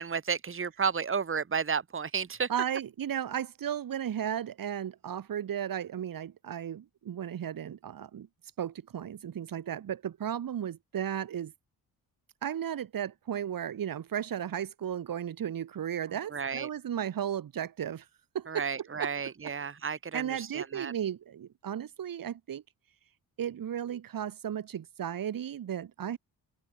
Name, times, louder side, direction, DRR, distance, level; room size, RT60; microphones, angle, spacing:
voice 1, 0.0-2.5 16.3-16.7 18.5-20.9, right 6 dB, 30° right, 1.9 m, -32 dB
voice 2, 2.5-8.3 8.6-11.5 12.4-18.1 18.3-19.1 20.1-22.6 23.4-26.2, right 9 dB, 60° right, 1.5 m, -35 dB
cardioid pair, 110°, 39 cm